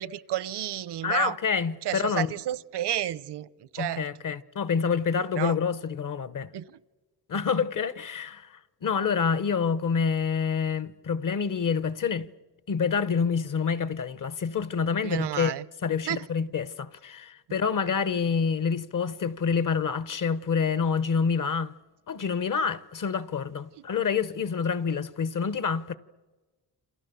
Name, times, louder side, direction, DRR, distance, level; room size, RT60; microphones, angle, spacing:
voice 1, 0.0-1.4 1.8-4.1 5.3-5.6 6.5-6.8 15.0-15.7 16.1-16.3 23.7-23.8, right 12 dB, 75° right, 0.8 m, -31 dB
voice 2, 1.0-2.3 3.8-6.5 7.3-12.3 12.7-15.5 15.8-21.7 22.1-25.9, left 6 dB, 50° left, 1.0 m, -27 dB
28.0 x 27.5 x 6.9 m
cardioid pair, 110°, 41 cm